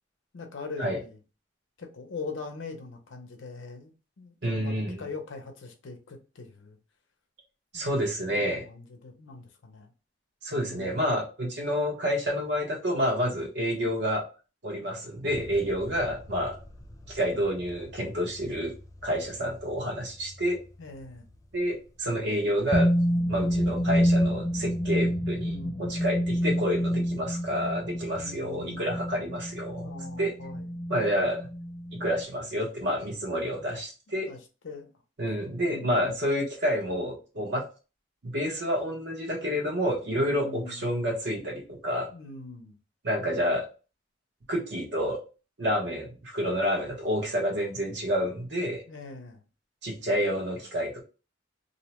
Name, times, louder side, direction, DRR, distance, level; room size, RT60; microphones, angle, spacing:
voice 1, 0.3-1.2 1.8-6.8 7.7-7.9 8.3-9.9 10.6-11.1 20.8-21.3 25.3-26.0 28.1-29.0 29.7-30.8 34.3-34.4 34.6-34.9 35.6-36.0 40.1-40.9 42.1-42.8 48.9-49.4, left 3 dB, 85° left, 0.6 m, -42 dB
voice 2, 4.4-5.0 7.7-8.6 10.4-14.2 14.6-16.6 17.1-18.7 19.0-20.6 21.5-22.9 23.3-25.5 25.8-29.9 30.2-30.3 30.9-31.5 31.9-34.3 35.2-37.6 38.2-42.1 43.0-43.7 44.5-45.2 45.6-48.8 49.8-51.0, equal, 65° right, 0.9 m, -29 dB
sound 1, 15.3-20.5 22.7-32.2, equal, 20° left, 0.3 m, -29 dB
2.6 x 2.1 x 2.9 m
head